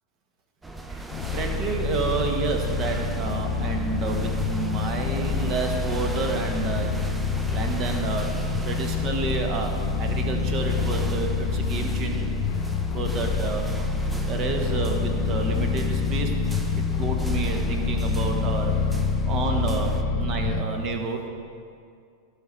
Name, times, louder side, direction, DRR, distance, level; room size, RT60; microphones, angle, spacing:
sound 1, 0.6-20.0, right 2 dB, 10° right, 0.6 m, -40 dB
sound 2, 1.1-20.6, left 4 dB, 40° left, 0.5 m, -26 dB
voice 1, 1.3-6.9 7.5-8.3 8.6-12.3 12.9-13.6 14.3-16.3 16.8-18.7 19.2-21.3, right 3 dB, 35° right, 3 dB, 1.4 m, -30 dB
16.5 x 6.0 x 3.4 m, 2.3 s
figure-of-eight pair, 90°, 0 cm